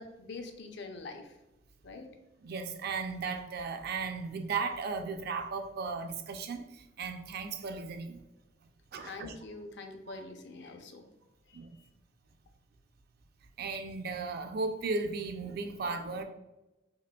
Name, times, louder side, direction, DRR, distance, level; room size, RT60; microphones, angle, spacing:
voice 1, 0.0-1.3 1.8-2.1 9.0-11.0 11.5-11.6, left 3 dB, 65° left, 5 dB, 0.5 m, -44 dB
voice 2, 2.4-8.2 8.9-9.3 10.1-10.2 11.5-11.8 13.6-16.2, right 4 dB, 55° right, 6 dB, 0.4 m, -36 dB
5.0 x 2.5 x 2.2 m, 0.99 s
head